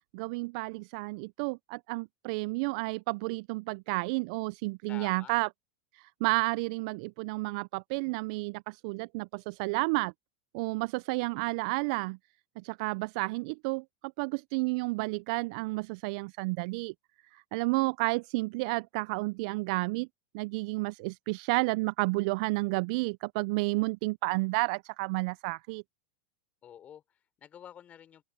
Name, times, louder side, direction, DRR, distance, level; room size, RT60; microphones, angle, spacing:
voice 1, 0.1-5.5 5.9-10.1 10.5-12.2 12.6-16.9 17.3-20.1 20.3-25.8, right 26 dB, 60° right, 0.3 m, -31 dB
voice 2, 4.9-5.3 26.6-28.2, left 9 dB, 35° left, 3.6 m, -49 dB
open air
hypercardioid pair, 105°, 5 cm